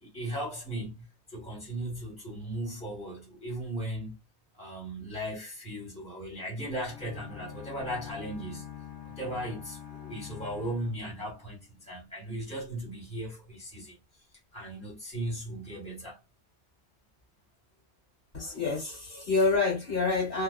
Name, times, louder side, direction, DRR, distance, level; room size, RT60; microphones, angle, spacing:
voice 1, 0.0-4.1 4.5-8.7 9.2-14.0 14.5-16.2, right 1 dB, 5° left, 1.2 m, -37 dB
sound 1, 6.8-11.8, left 10 dB, 90° left, 1.0 m, -45 dB
voice 2, 18.3-20.4, left 3 dB, 60° left, 1.2 m, -27 dB
2.4 x 2.3 x 2.3 m
omnidirectional pair, 1.1 m